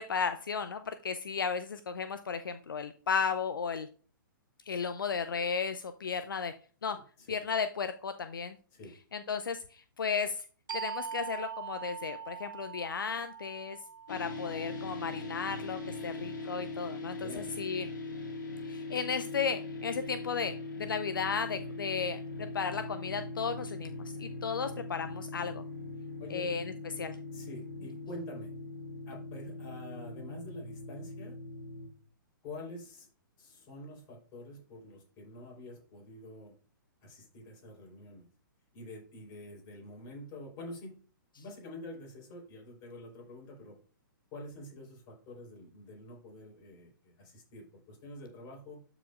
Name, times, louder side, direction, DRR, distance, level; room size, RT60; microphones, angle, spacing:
voice 1, 0.0-3.9 4.7-6.5 6.8-7.0 7.3-8.6 9.1-10.5 10.7-13.8 14.1-17.3 17.6-17.9 18.6-22.2 22.5-25.6 26.3-26.6 27.0-27.2, left 6 dB, 75° left, 10 dB, 0.5 m, -34 dB
sound 1, 10.7-16.0, right 7 dB, 65° right, 0.7 m, -43 dB
sound 2, 14.1-31.9, left 2 dB, 60° left, 1.9 m, -41 dB
voice 2, 17.2-17.6 26.2-26.5 27.3-28.5 29.1-31.3 32.4-33.1 33.4-36.6 37.0-38.3 38.7-41.0 41.4-43.8 44.3-48.9, left 1 dB, 30° left, -1 dB, 4.1 m, -47 dB
12.5 x 5.0 x 2.5 m, 0.41 s
figure-of-eight pair, 120°, 11 cm